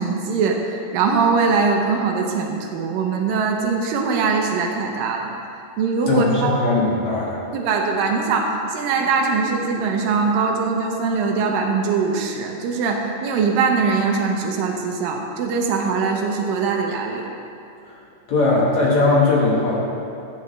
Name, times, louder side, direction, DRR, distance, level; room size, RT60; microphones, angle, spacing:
voice 1, 0.0-5.3 5.8-6.6 7.5-17.3, right 5 dB, 75° right, 1 dB, 2.5 m, -22 dB
voice 2, 6.1-7.4 17.9-18.0 18.3-19.8, left 2 dB, 60° left, -4 dB, 2.5 m, -19 dB
14.5 x 8.5 x 3.2 m, 2.7 s
omnidirectional pair, 4.1 m